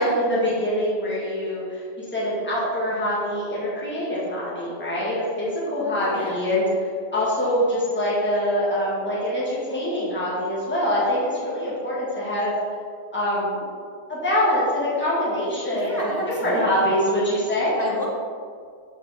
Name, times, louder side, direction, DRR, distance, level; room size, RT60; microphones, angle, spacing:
voice 1, 0.0-6.6 7.1-12.5 13.1-13.6 14.1-17.8, equal, 10° left, -8 dB, 1.6 m, -24 dB
voice 2, 6.0-6.4 15.7-16.9 17.8-18.1, equal, 15° right, -4 dB, 0.9 m, -30 dB
7.0 x 5.5 x 3.4 m, 2.1 s
omnidirectional pair, 1.3 m